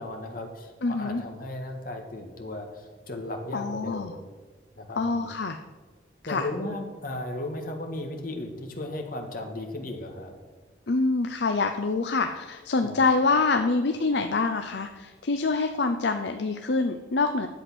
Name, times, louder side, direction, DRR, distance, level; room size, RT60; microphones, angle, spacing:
voice 1, 0.0-4.2 4.8-5.3 6.2-10.3 12.8-13.0, left 1 dB, 50° left, 3 dB, 1.7 m, -36 dB
voice 2, 0.8-1.2 3.5-4.1 5.0-5.6 6.3-6.5 10.9-17.5, left 3 dB, 65° left, 6 dB, 0.6 m, -26 dB
11.0 x 8.0 x 6.1 m, 1.3 s
head